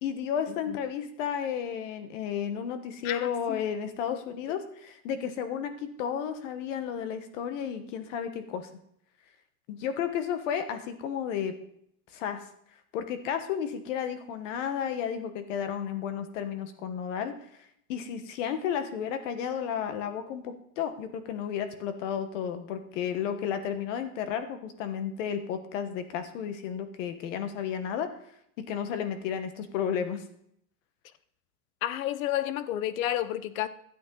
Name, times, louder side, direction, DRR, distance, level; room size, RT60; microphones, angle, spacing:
voice 1, 0.0-8.7 9.7-11.6 12.1-12.4 12.9-17.3 17.9-28.1 28.6-30.2, left 8 dB, 65° left, 9 dB, 1.4 m, -32 dB
voice 2, 3.0-3.6 4.1-4.2 31.8-33.7, left 12 dB, 85° left, 15 dB, 0.9 m, -31 dB
13.0 x 8.6 x 3.9 m, 0.70 s
supercardioid pair, 160°, 40 cm